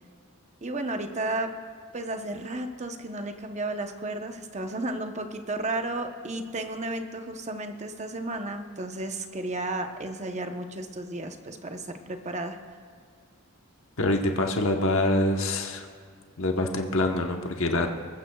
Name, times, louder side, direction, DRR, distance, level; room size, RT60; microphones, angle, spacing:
voice 1, 0.6-1.6 1.9-12.6, right 2 dB, 30° right, 5 dB, 0.9 m, -33 dB
voice 2, 14.0-15.9 16.4-17.9, left 1 dB, 65° left, 3 dB, 1.1 m, -25 dB
21.0 x 14.5 x 2.3 m, 2.3 s
head